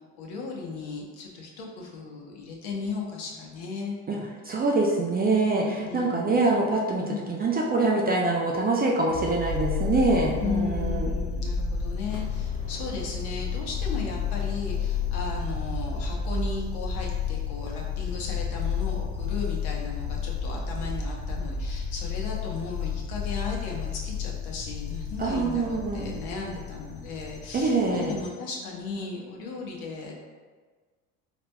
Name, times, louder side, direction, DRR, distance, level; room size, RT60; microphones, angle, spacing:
voice 1, 0.0-4.0 5.9-6.3 7.0-7.3 10.4-30.2, left 4 dB, 60° left, -1 dB, 0.9 m, -36 dB
voice 2, 4.4-11.1 25.2-26.1 27.5-28.1, right 3 dB, 20° right, -1 dB, 0.4 m, -24 dB
sound 1, 9.1-28.3, left 6 dB, 85° left, 0.7 m, -31 dB
sound 2, 12.0-17.4, right 3 dB, 10° left, 0.9 m, -46 dB
4.1 x 2.9 x 2.2 m, 1.4 s
hypercardioid pair, 65°, 44 cm